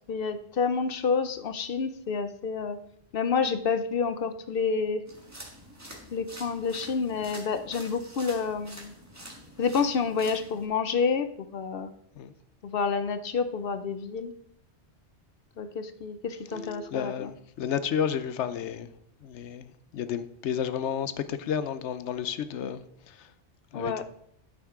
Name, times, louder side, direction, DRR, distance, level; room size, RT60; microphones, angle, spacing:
voice 1, 0.1-2.8 3.1-5.0 6.1-8.9 9.6-11.9 12.6-14.3 15.6-17.3 23.7-24.0, left 5 dB, 60° left, 0.8 m, -29 dB
sound 1, 5.1-10.7, equal, 15° right, 1.6 m, -46 dB
sound 2, 16.5-17.3 19.0-19.1 19.3-19.4 19.9-20.0 20.4-20.5 21.3-22.1, left 1 dB, 75° right, 1.7 m, -46 dB
voice 2, 16.9-18.9 19.2-23.3 23.7-24.0, left 8 dB, 85° left, 1.0 m, -32 dB
9.7 x 8.8 x 3.7 m
omnidirectional pair, 1.2 m